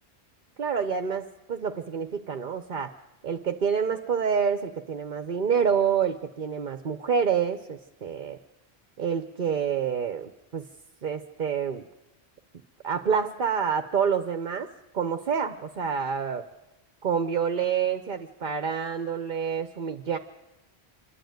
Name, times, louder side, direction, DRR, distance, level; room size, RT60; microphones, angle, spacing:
voice 1, 0.6-2.9 3.2-8.4 9.0-10.6 11.0-11.8 12.8-14.7 14.9-16.4 17.0-20.2, right 7 dB, 50° right, 8 dB, 1.0 m, -27 dB
26.5 x 12.0 x 9.2 m, 0.95 s
omnidirectional pair, 1.1 m